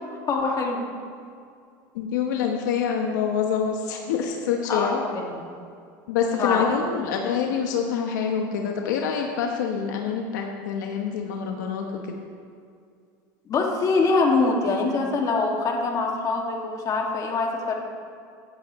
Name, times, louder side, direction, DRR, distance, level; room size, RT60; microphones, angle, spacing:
voice 1, 0.3-0.9 4.7-5.4 6.4-6.6 13.5-17.8, left 3 dB, 40° left, 0 dB, 2.1 m, -24 dB
voice 2, 1.9-5.0 6.1-12.1, left 7 dB, 85° left, 2 dB, 1.0 m, -26 dB
15.5 x 10.0 x 3.1 m, 2.3 s
supercardioid pair, 110°, 10 cm